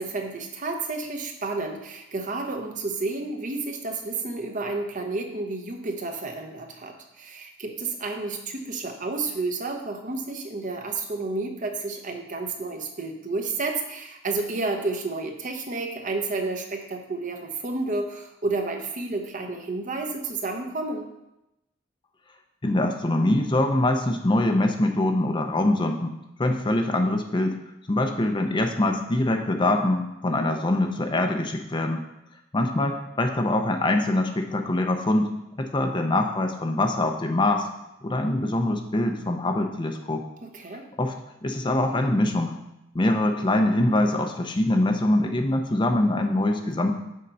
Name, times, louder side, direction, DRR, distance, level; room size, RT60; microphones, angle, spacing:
voice 1, 0.0-21.0 40.4-40.9, right 3 dB, 45° right, 4 dB, 0.8 m, -31 dB
voice 2, 22.6-26.1 26.4-27.6 27.9-32.0 32.5-35.3 35.6-37.7 38.0-40.2 41.0-41.1 41.4-42.5 42.9-46.9, left 1 dB, 25° left, 4 dB, 0.6 m, -23 dB
6.6 x 4.4 x 5.4 m, 0.90 s
head